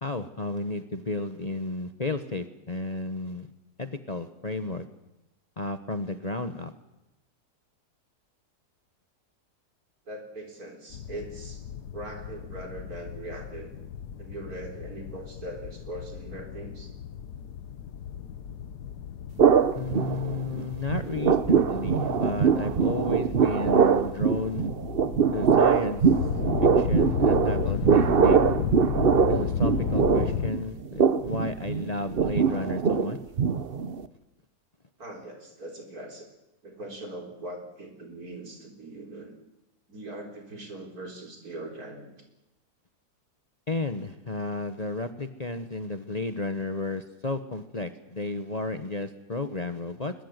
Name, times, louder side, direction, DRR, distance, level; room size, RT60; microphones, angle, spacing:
voice 1, 0.0-3.5 3.8-4.8 5.6-6.7 19.7-24.7 25.3-26.0 26.6-28.4 29.3-33.2 43.7-50.1, left 2 dB, 30° left, 9 dB, 1.0 m, -32 dB
voice 2, 10.1-11.6 11.9-13.7 14.2-16.9 19.8-20.0 35.0-36.3 36.6-39.3 39.9-42.1, right 1 dB, 70° right, 3 dB, 4.4 m, -41 dB
sound 1, 10.9-30.5, left 8 dB, 90° left, 1.6 m, -34 dB
sound 2, 19.4-20.6 20.9-34.0, right 6 dB, 45° right, 1.0 m, -23 dB
21.0 x 21.0 x 8.1 m, 0.91 s
omnidirectional pair, 1.7 m